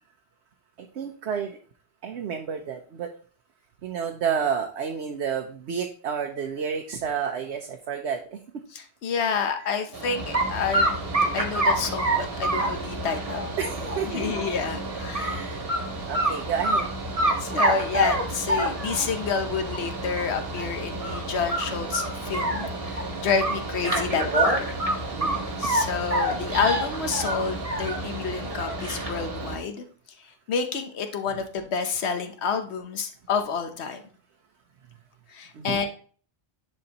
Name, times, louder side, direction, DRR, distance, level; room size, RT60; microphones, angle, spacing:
voice 1, 0.8-1.6 2.0-3.1 3.8-8.6 13.6-14.3 15.1-15.6 16.1-16.8 25.2-25.6 35.5-35.8, right 7 dB, 90° right, 3 dB, 1.0 m, -30 dB
voice 2, 8.7-11.0 11.3-13.5 14.1-15.6 17.4-24.7 25.6-29.8 30.5-34.0 35.3-35.9, left 6 dB, 80° left, 6 dB, 1.2 m, -29 dB
Mechanical fan, 9.9-29.6, right 2 dB, 60° right, 1.5 m, -34 dB
sound 1, 10.3-10.5 10.7-14.5 14.9-15.3 15.7-15.8 16.1-16.8 17.2-19.1 19.7-19.8 20.2-20.3 20.6-20.7 21.0-21.2 21.5-23.0 23.4-25.9 26.1-28.0 28.4-29.1, right 1 dB, 35° right, 1.3 m, -25 dB
10.5 x 4.4 x 2.9 m, 0.42 s
omnidirectional pair, 1.1 m